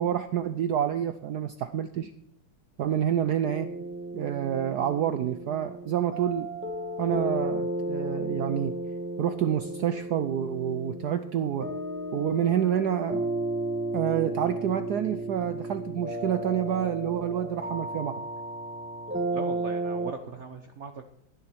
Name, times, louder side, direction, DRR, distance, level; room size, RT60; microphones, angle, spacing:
voice 1, 0.0-2.1 2.8-3.7 4.1-6.5 7.0-8.8 9.2-11.7 12.1-13.3 13.9-18.2, right 10 dB, 90° right, 11 dB, 0.8 m, -28 dB
sound 1, 3.4-20.1, right 1 dB, 10° right, 0.9 m, -33 dB
voice 2, 19.3-21.0, right 4 dB, 50° right, 6 dB, 0.8 m, -39 dB
16.5 x 10.5 x 4.5 m, 0.71 s
omnidirectional pair, 2.4 m